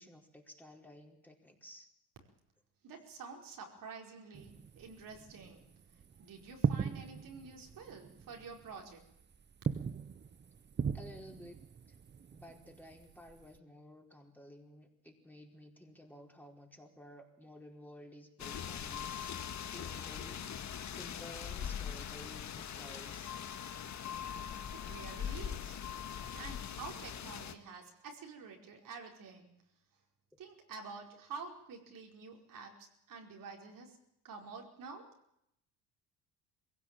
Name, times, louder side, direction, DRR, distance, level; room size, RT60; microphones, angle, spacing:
voice 1, 0.0-1.9 10.9-11.6 11.9-12.0 12.3-23.3, left 1 dB, 5° left, 1 dB, 4.7 m, -54 dB
voice 2, 2.8-5.6 6.2-9.0 24.7-25.8 26.0-29.5 30.4-34.0 34.2-35.1, right 4 dB, 60° right, 1 dB, 5.0 m, -49 dB
sound 1, 4.3-13.6, right 6 dB, 30° right, 0.9 m, -40 dB
sound 2, 18.4-27.5, left 8 dB, 45° left, 1.8 m, -41 dB
22.0 x 17.0 x 9.0 m, 0.77 s
hypercardioid pair, 70°, 38 cm